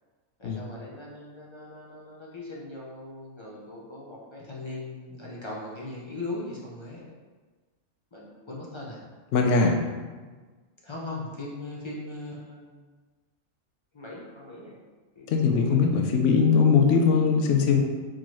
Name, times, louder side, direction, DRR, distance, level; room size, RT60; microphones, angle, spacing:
voice 1, 0.4-7.1 8.1-9.0 10.2-10.3 10.8-12.9 13.9-14.8 15.1-16.0, left 2 dB, 35° left, -5 dB, 0.4 m, -39 dB
voice 2, 9.3-9.8 15.3-17.8, left 5 dB, 70° left, 2 dB, 0.9 m, -21 dB
4.5 x 2.9 x 3.0 m, 1.4 s
omnidirectional pair, 1.4 m